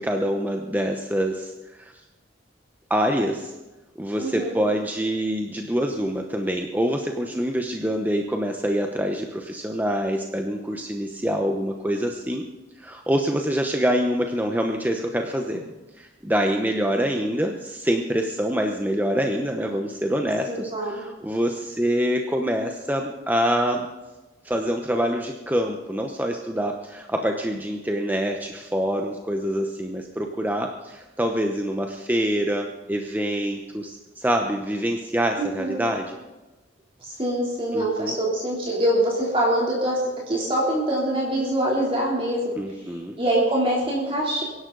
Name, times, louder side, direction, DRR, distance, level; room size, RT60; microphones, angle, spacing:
voice 1, 0.0-1.9 2.9-3.5 4.0-12.5 12.8-15.6 16.0-23.9 24.4-36.2 37.7-38.1 42.6-43.2, equal, 10° right, 3 dB, 0.9 m, -25 dB
voice 2, 4.2-4.6 20.5-21.0 35.4-35.8 37.0-40.0 40.3-42.6 42.8-44.4, right 1 dB, 30° right, -3 dB, 3.3 m, -24 dB
23.0 x 11.5 x 3.9 m, 1.1 s
head